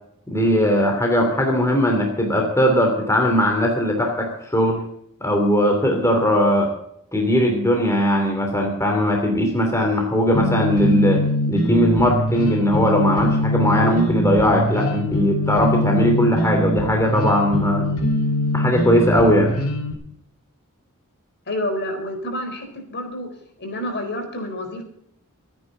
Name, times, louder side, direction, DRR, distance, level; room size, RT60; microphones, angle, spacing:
voice 1, 0.3-4.8 5.2-6.7 7.1-11.2 11.5-17.9 18.5-19.5, equal, 15° left, 2 dB, 2.9 m, -19 dB
sound 1, 10.3-19.9, left 1 dB, 70° left, 4.4 m, -22 dB
voice 2, 21.5-23.3 23.6-24.8, left 1 dB, 50° left, 5 dB, 4.4 m, -28 dB
26.0 x 9.9 x 4.0 m, 0.70 s
head